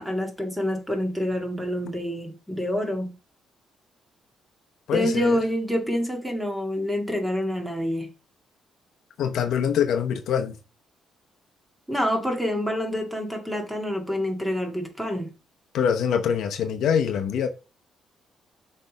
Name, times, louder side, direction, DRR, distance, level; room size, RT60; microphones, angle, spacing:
voice 1, 0.0-3.1 4.9-8.1 11.9-15.3, equal, 5° right, 2.0 m, -27 dB
voice 2, 4.9-5.4 9.2-10.6 15.7-17.5, left 7 dB, 75° left, 0.8 m, -24 dB
6.5 x 3.4 x 5.1 m
cardioid pair, 90°, 0 cm